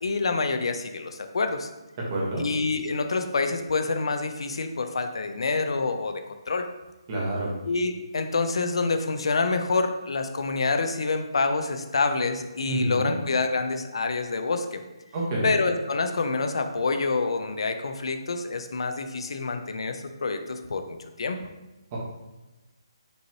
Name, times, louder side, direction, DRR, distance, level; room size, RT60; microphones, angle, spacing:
voice 1, 0.0-1.7 2.4-6.7 7.7-14.8 15.4-21.4, left 3 dB, 70° left, 7 dB, 0.5 m, -27 dB
voice 2, 2.1-2.4 7.1-7.5 12.6-13.1 15.1-15.5 21.9-22.0, right 2 dB, 30° right, -4 dB, 1.3 m, -28 dB
5.4 x 2.9 x 2.8 m, 1.1 s
hypercardioid pair, 160°, 3 cm